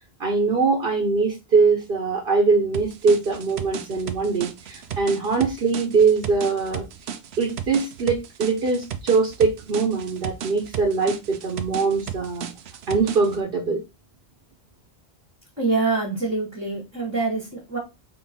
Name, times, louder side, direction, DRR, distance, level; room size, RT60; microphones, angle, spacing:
voice 1, 0.2-6.9 7.4-12.5 12.9-13.8, right 4 dB, 60° right, 1.0 m, -22 dB
sound 1, 2.7-13.4, right 8 dB, 90° right, 0.9 m, -35 dB
voice 2, 15.6-17.8, right 3 dB, 15° right, 1.1 m, -25 dB
3.8 x 3.1 x 4.1 m
omnidirectional pair, 1.1 m